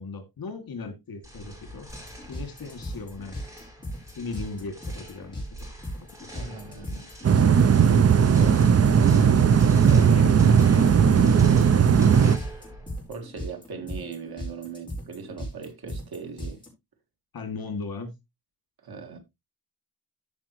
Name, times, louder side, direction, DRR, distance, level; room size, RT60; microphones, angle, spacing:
voice 1, 0.0-1.9 2.3-3.4 4.2-5.7 6.2-7.3 9.8-12.2 17.3-18.1, left 4 dB, 75° left, 2.6 m, -38 dB
sound 1, 1.2-13.1, equal, 10° right, 4.3 m, -45 dB
sound 2, 1.9-16.7, equal, 10° left, 4.7 m, -37 dB
voice 2, 6.3-7.1 7.8-8.7 9.7-10.0 13.1-16.6 18.8-19.2, right 5 dB, 90° right, 2.3 m, -39 dB
sound 3, 7.2-12.4, right 7 dB, 45° right, 0.6 m, -17 dB
13.5 x 5.3 x 3.1 m
wide cardioid pair, 155°, 36 cm